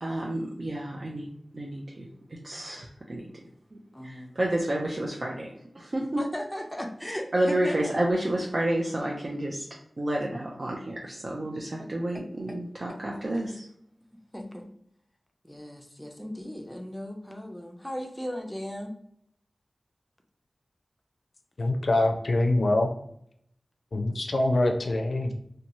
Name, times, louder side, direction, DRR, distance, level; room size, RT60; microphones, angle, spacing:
voice 1, 0.0-2.1 2.4-3.3 3.7-6.2 7.3-9.7 10.0-13.6, right 1 dB, 55° right, -2 dB, 0.4 m, -30 dB
voice 2, 3.9-4.3 6.2-8.0 11.8-11.9 12.5-12.6 14.3-14.7 15.4-19.0, equal, 10° left, 3 dB, 0.4 m, -37 dB
voice 3, 21.6-22.9 23.9-25.3, left 2 dB, 75° left, 4 dB, 0.4 m, -24 dB
2.7 x 2.2 x 2.9 m, 0.70 s
cardioid pair, 45°, 0 cm